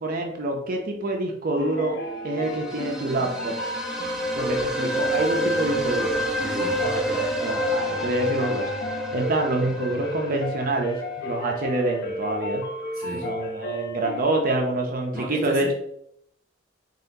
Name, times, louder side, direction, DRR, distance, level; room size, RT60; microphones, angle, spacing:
voice 1, 0.0-3.5 4.3-6.3 6.8-8.7 9.1-12.6 13.2-15.7, right 2 dB, 45° right, 1 dB, 0.6 m, -26 dB
sound 1, 1.6-14.2, equal, 60° left, 0.6 m, -33 dB
sound 2, 2.3-11.1, equal, 5° right, 0.5 m, -29 dB
voice 2, 6.4-6.8 13.0-13.3 15.1-15.7, equal, 20° left, -5 dB, 1.7 m, -35 dB
4.0 x 3.8 x 2.7 m, 0.73 s
head